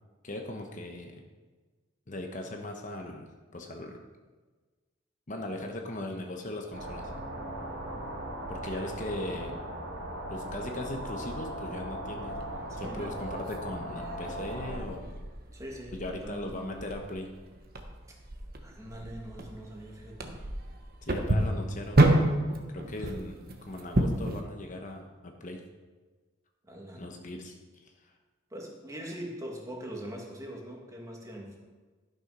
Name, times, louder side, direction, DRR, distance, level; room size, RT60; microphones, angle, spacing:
voice 1, 0.2-1.2 2.1-4.0 5.3-7.1 8.5-9.5 10.3-12.4 12.8-15.2 15.9-17.3 21.0-22.1 22.7-25.6 27.0-28.1, left 1 dB, 40° left, 3 dB, 1.0 m, -39 dB
sound 1, 6.7-14.8, right 1 dB, 70° right, 2.4 m, -38 dB
sound 2, 12.3-24.4, right 1 dB, 50° right, 1.0 m, -30 dB
voice 2, 12.7-13.1 15.5-16.5 18.6-20.3 23.0-23.1 26.6-27.1 28.5-31.6, equal, 15° right, -1 dB, 1.6 m, -42 dB
11.5 x 6.4 x 5.5 m, 1.3 s
head